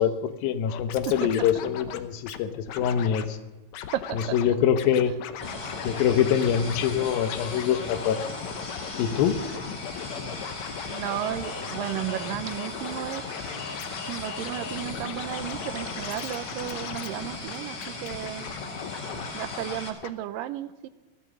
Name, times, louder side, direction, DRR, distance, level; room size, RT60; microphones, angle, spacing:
voice 1, 0.0-3.4 4.1-5.1 5.8-8.2 9.0-9.4, left 9 dB, 90° left, 10 dB, 2.8 m, -24 dB
Scratching (performance technique), 0.7-2.4 2.7-3.3 3.7-4.5 4.8-19.8 20.0-20.1, left 9 dB, 70° left, 1.8 m, -38 dB
voice 2, 3.9-4.4 10.9-13.2 14.1-18.5 19.3-20.9, right 13 dB, 80° right, 14 dB, 2.3 m, -33 dB
sound 1, 5.4-19.9, left 2 dB, 30° left, 2.5 m, -37 dB
15.5 x 12.0 x 6.4 m, 1.2 s
omnidirectional pair, 4.0 m